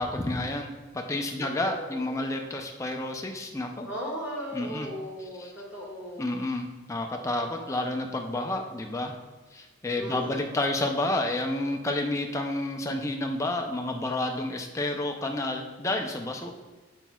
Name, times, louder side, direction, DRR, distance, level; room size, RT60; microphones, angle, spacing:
voice 1, 0.0-3.9 4.5-4.9 5.4-5.5 6.2-9.1 9.5-16.5, left 2 dB, 15° left, 3 dB, 0.4 m, -30 dB
voice 2, 1.4-2.2 3.8-6.4 7.2-7.3 10.0-10.6, equal, 10° right, -6 dB, 1.4 m, -37 dB
7.1 x 5.9 x 2.3 m, 1.2 s
head